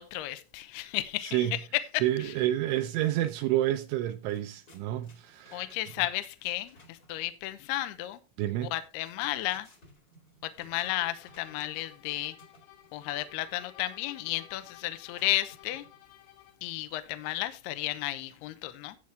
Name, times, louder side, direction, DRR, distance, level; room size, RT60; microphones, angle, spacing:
voice 1, 0.0-2.3 5.5-8.2 8.6-9.7 10.4-12.4 12.9-15.9 16.6-19.0, left 16 dB, 90° left, 2.3 m, -33 dB
voice 2, 2.0-5.7 8.4-8.7, right 13 dB, 80° right, 2.9 m, -29 dB
sound 1, 3.6-3.8 4.0-7.1 8.8-12.0 12.4-13.4 15.1-16.1, left 1 dB, 40° left, 1.3 m, -59 dB
sound 2, 10.8-16.7, left 14 dB, 70° left, 3.4 m, -55 dB
13.0 x 7.7 x 3.5 m
omnidirectional pair, 5.8 m